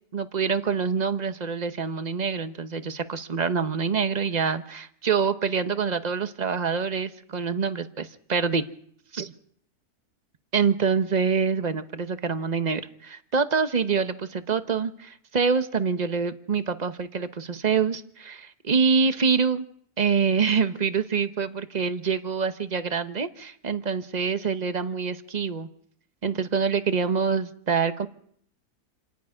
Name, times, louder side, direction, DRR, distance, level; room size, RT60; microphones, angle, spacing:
voice 1, 0.1-8.0 8.3-8.6 9.1-9.3 10.5-19.7 20.0-25.7 26.2-28.1, right 5 dB, 35° right, 10 dB, 0.9 m, -25 dB
27.5 x 9.6 x 9.8 m, 0.67 s
omnidirectional pair, 1.6 m